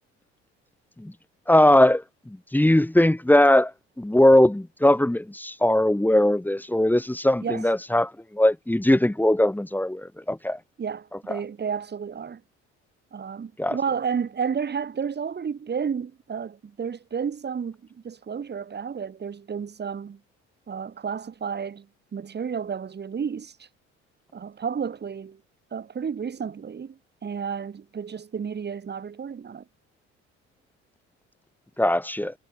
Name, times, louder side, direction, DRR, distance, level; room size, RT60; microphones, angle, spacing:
voice 1, 1.5-3.7 4.0-10.6 13.6-13.8 31.8-32.3, left 1 dB, 5° left, 1.3 m, -20 dB
voice 2, 10.8-12.4 13.1-20.2 20.7-21.9 22.1-23.7 24.3-25.4 25.7-29.6, right 6 dB, 30° right, 1.4 m, -31 dB
hypercardioid pair, 55°, 35 cm